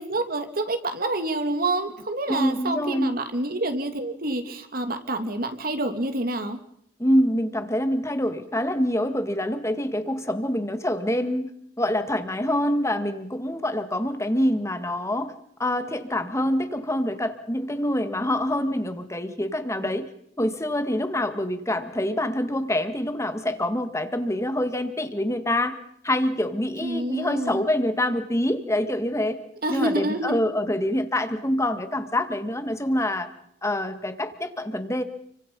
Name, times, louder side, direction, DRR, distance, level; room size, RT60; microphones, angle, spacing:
voice 1, 0.0-6.6 26.7-27.6 29.6-30.5, right 2 dB, 55° right, 7 dB, 2.7 m, -28 dB
voice 2, 2.3-3.1 7.0-11.5 11.8-15.3 15.6-20.1 20.4-25.8 26.0-29.4 29.7-33.3 33.6-35.0, left 1 dB, 15° left, 9 dB, 2.0 m, -26 dB
30.0 x 24.0 x 5.6 m, 0.72 s
head